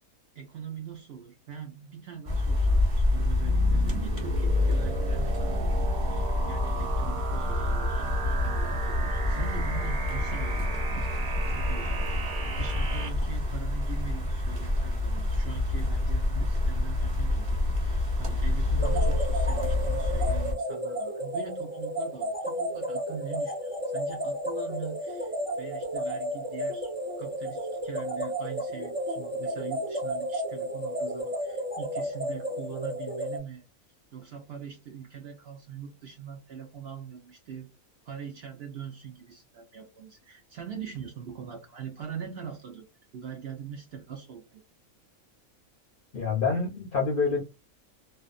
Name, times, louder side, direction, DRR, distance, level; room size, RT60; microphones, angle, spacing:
voice 1, 0.3-10.8 11.2-26.9 27.2-33.7 34.1-37.7 38.0-42.8 43.1-44.6, right 7 dB, 60° right, 0.7 m, -42 dB
sound 1, 2.3-20.5, left 2 dB, 25° right, 1.0 m, -27 dB
sound 2, 3.1-13.1, right 4 dB, 90° right, 1.2 m, -35 dB
sound 3, 18.8-33.4, equal, 10° right, 0.7 m, -32 dB
voice 2, 46.1-47.4, left 5 dB, 60° left, 0.5 m, -27 dB
2.5 x 2.2 x 2.4 m
omnidirectional pair, 1.5 m